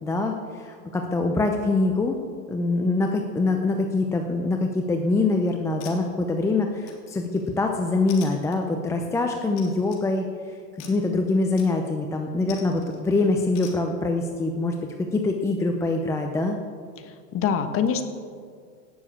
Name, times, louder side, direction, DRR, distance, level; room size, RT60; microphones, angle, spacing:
voice 1, 0.0-2.2 2.5-10.3 10.9-14.8 15.1-16.6, left 3 dB, 5° left, 3 dB, 0.5 m, -24 dB
sound 1, 5.1-5.3 5.8-6.4 6.9-7.5 8.1-8.9 9.6-10.0 10.8-11.1 11.6-12.0 12.5-13.0 13.6-13.8, left 7 dB, 55° left, 3.4 m, -45 dB
voice 2, 17.0-18.0, left 7 dB, 25° left, 8 dB, 1.3 m, -25 dB
17.5 x 7.1 x 8.6 m, 2.1 s
hypercardioid pair, 130°, 48 cm